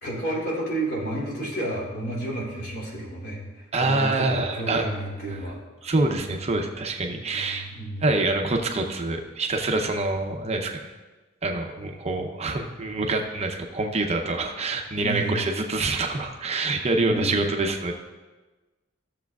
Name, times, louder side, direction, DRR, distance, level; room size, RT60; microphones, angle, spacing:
voice 1, 0.0-3.4 3.8-5.6 5.9-6.1 7.0-8.0 15.0-15.4 17.0-17.4, right 1 dB, 55° left, -5 dB, 3.2 m, -31 dB
voice 2, 3.7-4.9 5.3-5.4 5.8-7.7 8.0-10.9 11.4-17.9, right 2 dB, 35° right, 3 dB, 0.7 m, -26 dB
15.0 x 7.1 x 2.4 m, 1.2 s
head